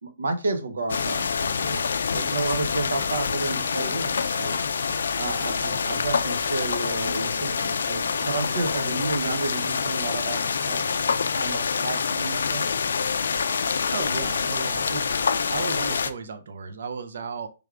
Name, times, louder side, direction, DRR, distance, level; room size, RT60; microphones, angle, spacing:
voice 1, 0.0-1.8 2.1-4.6 5.2-12.6, right 3 dB, 85° right, 6 dB, 0.8 m, -31 dB
sound 1, 0.9-16.1, left 5 dB, 80° left, 0.4 m, -26 dB
voice 2, 13.9-17.5, right 5 dB, 70° right, 8 dB, 0.5 m, -34 dB
4.6 x 3.4 x 2.4 m, 0.31 s
hypercardioid pair, 145°, 0 cm